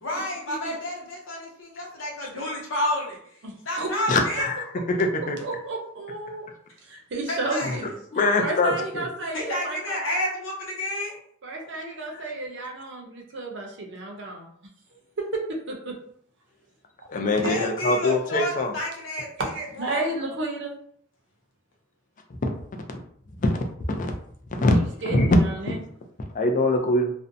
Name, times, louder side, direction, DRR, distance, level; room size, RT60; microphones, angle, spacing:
voice 1, 0.0-3.4 3.7-4.5 7.3-7.8 9.3-11.2 17.4-19.5 19.8-20.0, left 1 dB, 80° left, -1 dB, 0.8 m, -30 dB
voice 2, 3.4-4.0 5.4-6.5 6.8-7.9 8.4-10.0 11.4-14.5 14.9-16.0 19.4-20.7 24.6-25.8, right 2 dB, 65° right, 1 dB, 0.6 m, -32 dB
voice 3, 4.1-5.4 8.1-8.7 17.1-18.7 23.4-23.7 24.0-24.1 24.6-24.8 25.0-25.4 26.3-27.1, left 2 dB, 40° left, 3 dB, 0.4 m, -23 dB
2.5 x 2.1 x 2.6 m, 0.64 s
head